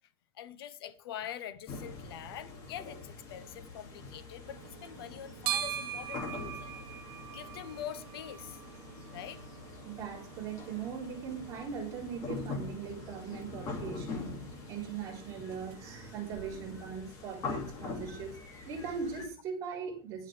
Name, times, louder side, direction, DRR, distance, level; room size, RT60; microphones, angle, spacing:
voice 1, 0.3-6.8 7.3-8.6 9.1-9.4, left 10 dB, 85° left, 1.1 m, -44 dB
sound 1, 1.7-19.3, left 4 dB, 25° left, 2.5 m, -44 dB
sound 2, 4.5-17.0, right 10 dB, 70° right, 1.3 m, -44 dB
voice 2, 9.9-14.4 14.7-18.4 18.7-20.3, right 6 dB, 25° right, 3.9 m, -40 dB
18.5 x 6.2 x 3.4 m
supercardioid pair, 175°, 12 cm